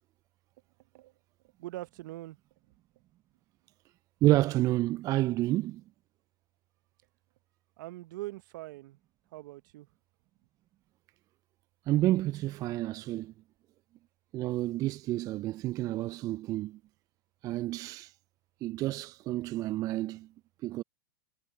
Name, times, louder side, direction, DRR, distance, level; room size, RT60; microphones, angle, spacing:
voice 1, 1.6-2.4 7.8-9.0 9.3-9.9, right 18 dB, 60° right, 1.0 m, -42 dB
voice 2, 4.2-5.8 11.9-13.3 14.3-16.8 17.4-18.1 18.6-20.3 20.6-20.8, right 16 dB, 30° right, 0.3 m, -29 dB
hypercardioid pair, 100°, 12 cm